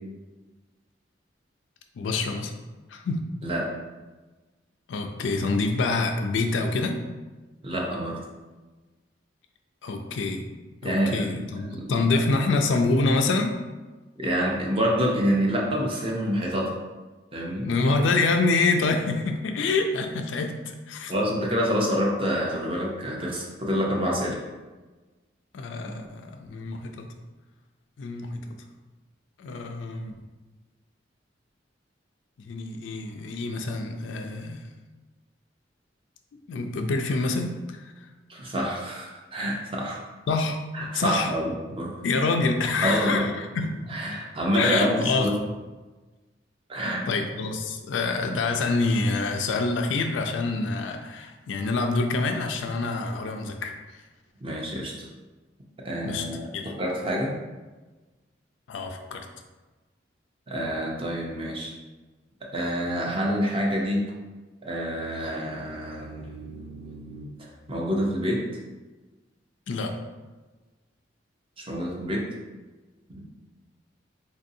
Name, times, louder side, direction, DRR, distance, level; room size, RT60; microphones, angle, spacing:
voice 1, 2.0-2.5 2.9-3.2 4.9-7.0 9.8-10.4 10.8-13.6 17.6-20.5 20.9-21.1 25.5-27.1 28.0-28.6 29.4-30.1 32.4-34.7 36.5-38.1 40.3-40.6 40.9-41.3 42.0-43.8 44.5-45.4 47.1-53.7 56.0-56.2 56.5-56.7 58.7-59.3 69.7-69.9, left 3 dB, 80° left, 4 dB, 0.4 m, -26 dB
voice 2, 7.6-8.2 10.8-11.2 11.7-12.5 14.2-16.7 17.3-17.7 21.1-24.4 38.3-40.0 40.7-41.9 42.8-43.3 43.9-45.3 46.7-47.1 54.4-54.9 55.8-57.3 60.5-61.7 62.4-64.1 64.6-68.4 71.6-72.3 73.1-73.2, equal, 30° right, -2 dB, 0.6 m, -27 dB
3.9 x 2.6 x 2.6 m, 1.2 s
head